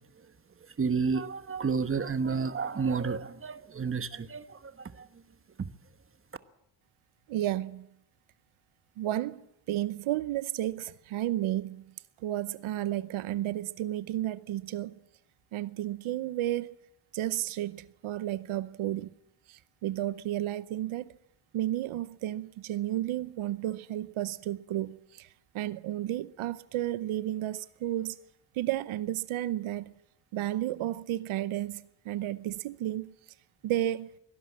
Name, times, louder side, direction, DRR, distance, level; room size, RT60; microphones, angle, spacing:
voice 1, 0.8-5.1 5.6-5.7, right 5 dB, 25° right, 1.2 m, -31 dB
voice 2, 7.3-7.9 9.0-9.4 9.7-11.9 12.2-15.0 15.5-16.7 17.1-19.2 19.5-21.1 21.5-25.3 25.5-28.2 28.5-29.9 30.3-33.1 33.6-34.1, right 13 dB, 85° right, 0.9 m, -32 dB
23.5 x 17.0 x 7.4 m
cardioid pair, 120°, 47 cm